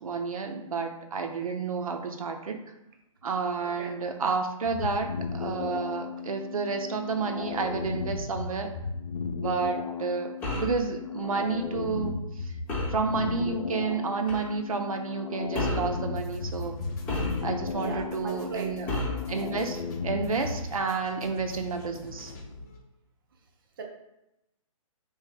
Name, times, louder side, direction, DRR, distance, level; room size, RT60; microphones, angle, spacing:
voice 1, 0.0-2.6 3.2-8.7 9.4-12.5 12.9-16.8 17.4-18.9 19.3-22.3, right 4 dB, 80° right, 5 dB, 0.7 m, -30 dB
voice 2, 3.6-4.0 17.8-18.8 23.8-23.9, right 5 dB, 40° right, 2 dB, 0.6 m, -38 dB
sound 1, 4.6-20.7, left 5 dB, 85° left, 0.6 m, -35 dB
sound 2, 10.4-10.8 12.7-13.0 14.3-14.5 15.5-16.0 17.1-17.7 18.9-19.3, left 2 dB, 10° left, 0.7 m, -31 dB
sound 3, 16.2-22.8, left 2 dB, 30° left, 0.9 m, -45 dB
6.4 x 3.1 x 2.2 m, 0.90 s
hypercardioid pair, 165°, 18 cm